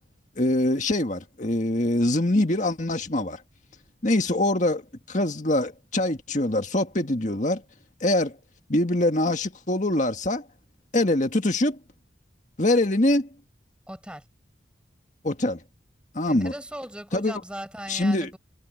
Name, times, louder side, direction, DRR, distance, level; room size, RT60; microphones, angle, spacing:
voice 1, 0.4-3.4 4.0-7.6 8.0-8.4 8.7-10.5 10.9-11.8 12.6-13.3 15.2-15.6 16.1-16.5 17.1-17.4 17.9-18.3, left 1 dB, 40° left, 1.9 m, -24 dB
voice 2, 13.9-14.2 16.3-18.4, right 1 dB, 5° right, 7.8 m, -38 dB
head